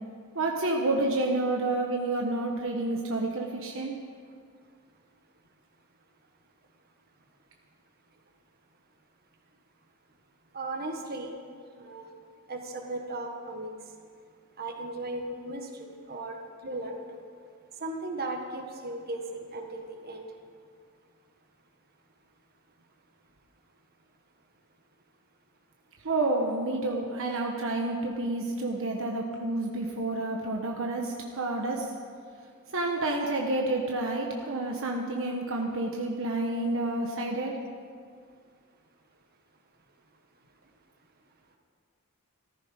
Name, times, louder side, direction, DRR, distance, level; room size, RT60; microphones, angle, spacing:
voice 1, 0.3-4.0 26.0-31.9 32.7-37.6, right 2 dB, 65° right, 0 dB, 1.2 m, -29 dB
voice 2, 10.5-11.3 11.8-12.1 12.5-13.7 14.6-17.2 17.8-20.2, right 2 dB, 45° right, 3 dB, 1.5 m, -36 dB
14.5 x 14.0 x 5.2 m, 2.1 s
head